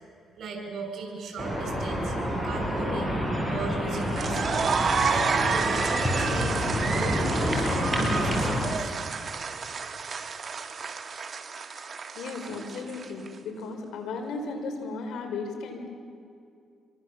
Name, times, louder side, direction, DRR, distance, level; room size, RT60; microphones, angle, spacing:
voice 1, 0.4-2.1 2.4-3.2 3.5-4.8 5.1-8.9, right 3 dB, 65° right, 3 dB, 7.7 m, -37 dB
sound 1, 1.4-8.6, equal, ahead, 7.8 m, -28 dB
sound 2, 3.9-13.3, right 5 dB, 40° right, 1.8 m, -30 dB
voice 2, 12.1-15.9, left 3 dB, 80° left, 5 dB, 5.1 m, -35 dB
27.5 x 23.5 x 7.6 m, 2.4 s
cardioid pair, 90°, 0 cm